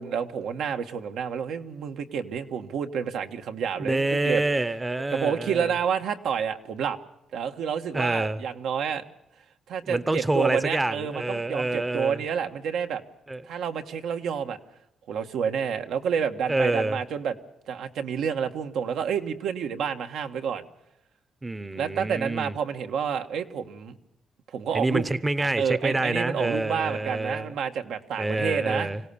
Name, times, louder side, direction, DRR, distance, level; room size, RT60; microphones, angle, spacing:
voice 1, 0.0-4.4 5.1-7.0 7.3-9.0 9.7-13.0 13.4-14.6 15.1-17.4 17.7-20.6 21.7-23.9 24.5-25.1 25.4-28.9, right 7 dB, 80° right, 6 dB, 1.5 m, -29 dB
voice 2, 3.8-5.7 7.9-8.4 9.9-12.2 13.3-13.4 16.5-17.0 21.4-22.5 24.7-27.5 28.2-29.0, right 2 dB, 15° right, 15 dB, 0.7 m, -27 dB
25.0 x 17.0 x 7.0 m, 0.82 s
cardioid pair, 145°, 0 cm